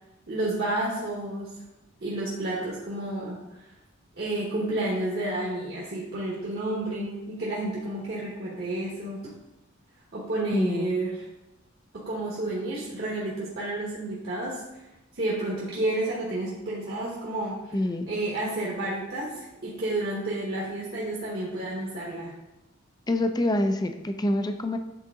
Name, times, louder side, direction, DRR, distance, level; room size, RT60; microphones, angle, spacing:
voice 1, 0.3-1.5 2.0-3.4 4.2-9.2 10.1-11.2 11.9-14.6 15.1-17.7 18.1-22.3, right 2 dB, 50° right, -5 dB, 1.1 m, -30 dB
voice 2, 10.5-11.0 17.7-18.1 23.1-24.8, left 1 dB, 20° left, 7 dB, 0.4 m, -26 dB
8.4 x 3.8 x 3.6 m, 0.96 s
head